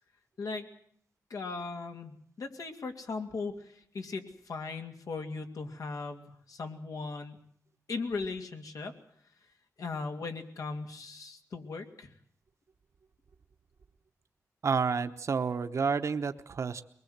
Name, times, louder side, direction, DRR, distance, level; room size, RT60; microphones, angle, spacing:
voice 1, 1.3-7.4 7.9-8.9 9.8-12.1, left 4 dB, 80° left, 5 dB, 2.6 m, -38 dB
voice 2, 14.6-16.8, right 5 dB, 55° right, 8 dB, 1.0 m, -30 dB
23.0 x 20.5 x 8.1 m, 0.66 s
wide cardioid pair, 150°, 6 cm